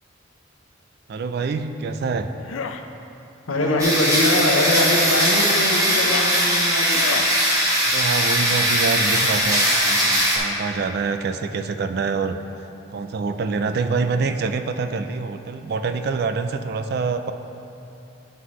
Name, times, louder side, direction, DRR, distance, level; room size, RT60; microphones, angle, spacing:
voice 1, 1.1-2.3 7.9-12.4 12.9-17.3, right 4 dB, 50° right, 8 dB, 0.3 m, -26 dB
sound 1, 2.4-2.8 3.6-3.9 4.7-4.9 5.8-6.4 6.9-7.3, left 5 dB, 70° left, 0.3 m, -31 dB
voice 2, 3.5-7.0, left 1 dB, 85° left, 0 dB, 1.0 m, -22 dB
sound 2, 3.8-10.4, equal, 15° right, 1.1 m, -20 dB
9.7 x 5.6 x 3.1 m, 2.9 s
head